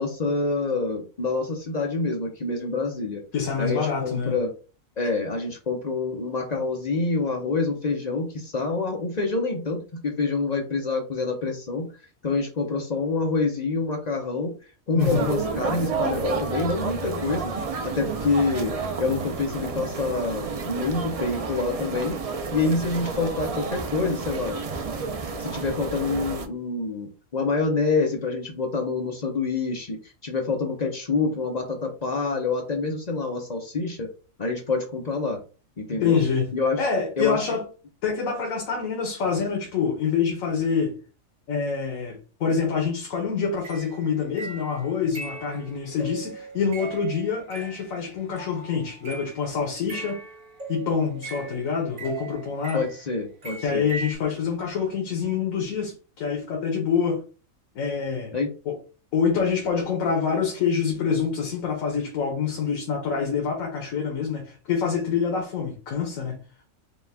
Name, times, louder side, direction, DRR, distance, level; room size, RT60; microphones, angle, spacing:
voice 1, 0.0-3.2 3.6-4.5 5.0-11.9 12.2-14.5 14.9-17.5 17.8-18.7 19.0-22.1 22.5-24.6 25.4-30.0 30.2-34.1 34.4-35.4 35.8-36.2 36.5-36.8 37.2-37.4 52.7-53.9 58.3-58.5, left 3 dB, 40° left, 0.6 m, -26 dB
voice 2, 3.3-4.3 15.0-15.3 36.0-36.5 36.8-37.6 38.0-40.9 41.5-50.2 50.7-52.8 53.6-57.2 57.7-58.3 58.7-58.8 59.1-66.4, left 6 dB, 85° left, 1.3 m, -26 dB
sound 1, 15.0-26.5, right 4 dB, 60° right, 0.3 m, -30 dB
sound 2, 43.5-49.4 49.9-53.1 53.4-54.1, right 3 dB, 80° right, 2.2 m, -39 dB
5.1 x 2.4 x 3.4 m
omnidirectional pair, 1.4 m